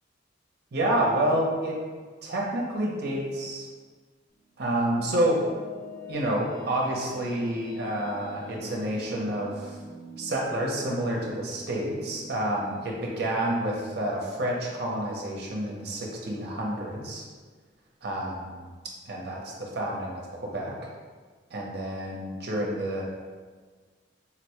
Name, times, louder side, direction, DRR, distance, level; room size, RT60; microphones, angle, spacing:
voice 1, 0.7-1.8 2.2-3.7 4.6-5.4 6.1-9.8 10.2-17.2 18.0-18.7 19.1-20.7 21.5-23.0, right 1 dB, 60° right, -2 dB, 0.6 m, -29 dB
sound 1, 4.3-15.6, equal, 60° left, 1.0 m, -46 dB
4.0 x 2.1 x 2.9 m, 1.5 s
head